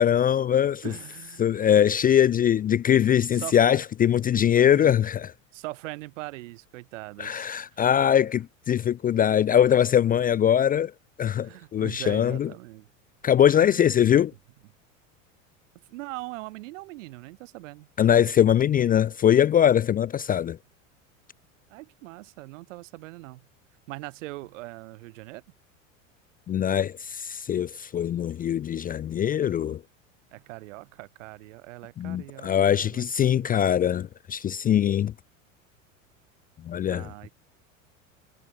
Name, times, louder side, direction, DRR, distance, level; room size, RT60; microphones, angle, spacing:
voice 1, 0.0-0.8 1.4-5.3 7.2-10.9 11.2-12.5 13.2-14.3 18.0-20.6 26.5-29.8 32.0-35.1 36.6-37.3, left 9 dB, 20° left, 0.5 m, -22 dB
voice 2, 0.8-1.7 3.0-3.6 4.5-4.9 5.5-7.8 11.4-12.9 13.5-13.9 15.9-17.9 21.7-23.4 23.9-25.4 30.3-33.5 36.9-37.3, right 20 dB, 70° right, 5.0 m, -41 dB
hypercardioid pair, 85°, 39 cm